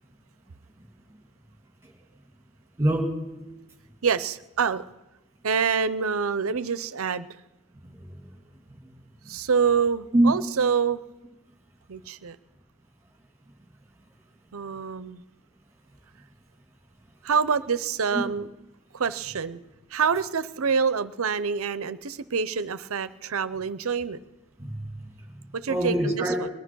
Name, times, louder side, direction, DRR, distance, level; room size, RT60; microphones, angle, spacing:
voice 1, 2.8-3.1 7.8-8.3 8.7-8.8 10.1-10.3 18.1-18.3 24.6-26.3, right 1 dB, 10° right, 2 dB, 2.6 m, -26 dB
voice 2, 4.0-4.8 5.4-7.3 9.3-11.0 11.9-12.4 14.5-15.2 17.2-18.5 18.9-19.6 19.9-24.2 25.5-26.5, right 6 dB, 65° right, 16 dB, 0.6 m, -26 dB
20.5 x 10.5 x 6.2 m, 1.0 s
head